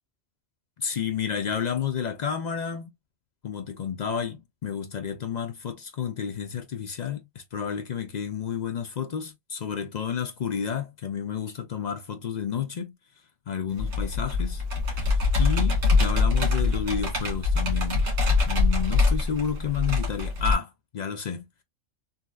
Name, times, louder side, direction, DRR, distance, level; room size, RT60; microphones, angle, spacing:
voice 1, 0.8-2.9 3.4-12.9 13.5-14.6 14.9-18.1 18.5-21.5, left 7 dB, 60° left, 0.4 m, -31 dB
Computer keyboard, 13.8-20.5, left 3 dB, 65° right, 1.6 m, -24 dB
3.1 x 2.7 x 2.3 m
omnidirectional pair, 1.3 m